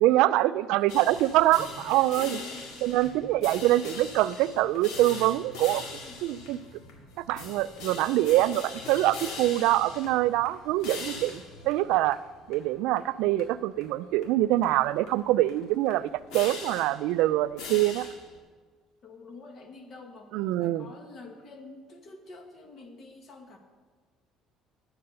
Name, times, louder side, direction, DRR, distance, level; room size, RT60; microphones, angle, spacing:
voice 1, 0.0-2.4 2.8-5.8 6.2-6.6 7.3-12.2 12.5-18.1 20.3-20.9, right 15 dB, 80° right, 16 dB, 0.3 m, -24 dB
sound 1, 0.9-18.4, left 3 dB, 75° left, 1.9 m, -42 dB
voice 2, 1.8-3.2 6.0-6.8 19.0-23.6, left 3 dB, 40° left, 5 dB, 1.5 m, -48 dB
9.6 x 7.6 x 6.7 m, 1.5 s
cardioid pair, 145°, 0 cm